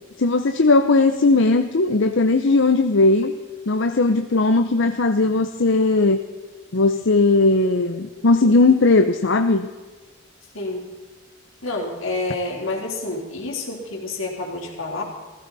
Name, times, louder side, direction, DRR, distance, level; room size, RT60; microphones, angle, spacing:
voice 1, 0.2-3.3 3.7-6.2 6.7-9.7, left 3 dB, 65° left, 7 dB, 0.8 m, -18 dB
voice 2, 10.5-10.9 11.6-15.0, left 2 dB, 85° left, -1 dB, 3.7 m, -28 dB
17.5 x 15.5 x 4.1 m, 1.4 s
head